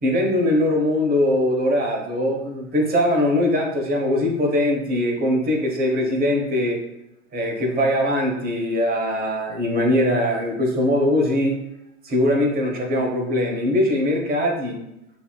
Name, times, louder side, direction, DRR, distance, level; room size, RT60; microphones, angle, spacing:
voice 1, 0.0-6.8 7.3-11.5 12.0-14.8, left 1 dB, 20° right, 1 dB, 1.0 m, -21 dB
6.8 x 2.8 x 2.3 m, 0.84 s
hypercardioid pair, 95°, 42 cm